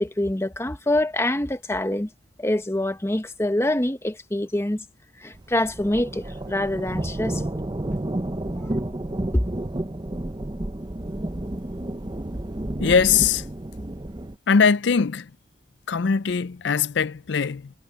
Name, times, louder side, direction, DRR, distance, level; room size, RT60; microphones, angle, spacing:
voice 1, 0.0-2.1 2.4-4.8 5.2-7.4 8.6-8.7 9.3-9.5, left 1 dB, 15° left, 0.8 m, -25 dB
sound 1, 5.3-14.4, right 1 dB, 20° right, 0.6 m, -31 dB
voice 2, 12.8-13.4 14.5-15.3 15.9-17.7, left 6 dB, 60° left, 0.5 m, -21 dB
head